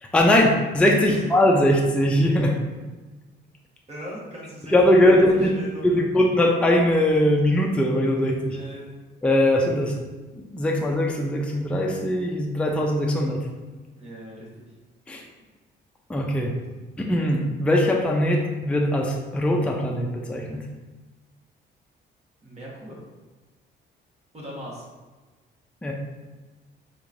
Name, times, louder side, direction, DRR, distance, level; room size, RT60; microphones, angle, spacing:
voice 1, 0.0-2.6 4.7-5.6 5.8-8.6 9.2-10.0 10.3-13.4 15.1-15.2 16.1-16.6 17.0-20.6 25.8-25.9, left 1 dB, 5° left, 0 dB, 0.4 m, -21 dB
voice 2, 3.9-6.2 8.5-8.9 13.9-14.7 16.7-16.8 22.4-23.0 24.3-24.9, equal, 30° right, -5 dB, 1.2 m, -40 dB
3.7 x 2.9 x 2.5 m, 1.2 s
cardioid pair, 90°, 20 cm